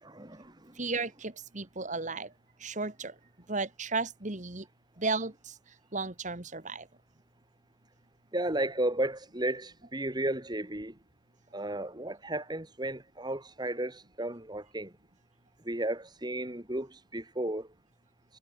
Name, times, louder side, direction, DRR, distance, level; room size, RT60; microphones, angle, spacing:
voice 1, 0.0-0.8 8.3-11.0 11.5-14.9 15.6-17.7, right 1 dB, 20° right, 2.3 m, -34 dB
voice 2, 0.8-2.3 2.6-3.2 3.5-4.7 5.0-6.9, right 3 dB, 40° right, 2.0 m, -34 dB
head